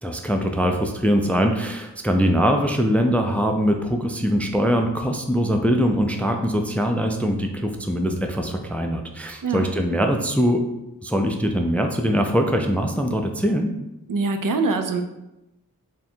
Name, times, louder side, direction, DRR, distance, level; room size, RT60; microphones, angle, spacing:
voice 1, 0.0-10.6 11.0-13.7, equal, 5° left, 4 dB, 0.3 m, -22 dB
voice 2, 14.1-15.0, right 3 dB, 65° right, 6 dB, 0.4 m, -23 dB
3.6 x 2.2 x 4.3 m, 0.92 s
wide cardioid pair, 55°, 36 cm